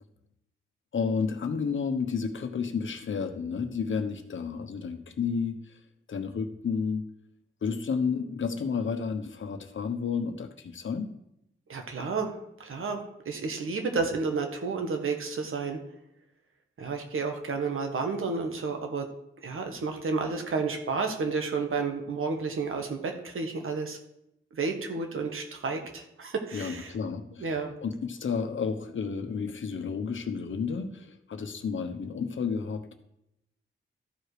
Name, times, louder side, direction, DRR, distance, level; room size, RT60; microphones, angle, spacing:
voice 1, 0.9-5.8 6.1-7.0 7.6-11.1 26.5-32.9, left 5 dB, 65° left, 8 dB, 1.1 m, -31 dB
voice 2, 11.7-12.3 12.6-15.8 16.8-19.1 19.4-24.0 24.5-26.9 27.4-27.7, right 4 dB, 80° right, 4 dB, 1.6 m, -31 dB
13.5 x 4.9 x 5.0 m, 0.80 s
cardioid pair, 80°, 21 cm